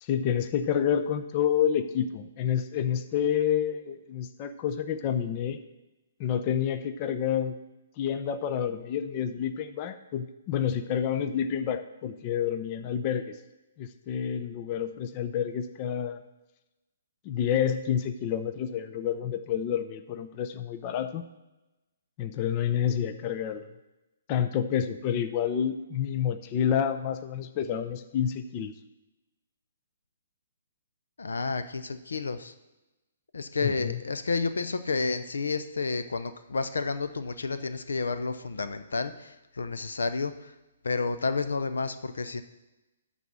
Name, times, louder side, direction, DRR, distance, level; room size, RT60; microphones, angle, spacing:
voice 1, 0.0-5.6 6.2-7.5 8.0-13.4 13.8-16.2 17.2-21.2 22.2-23.7 24.3-28.7 33.6-34.0, left 9 dB, 35° left, 10 dB, 0.7 m, -29 dB
voice 2, 31.2-32.5 33.3-40.5 40.8-42.4, left 4 dB, 75° left, 10 dB, 0.7 m, -30 dB
12.0 x 4.1 x 7.3 m, 1.0 s
figure-of-eight pair, 125°, 0 cm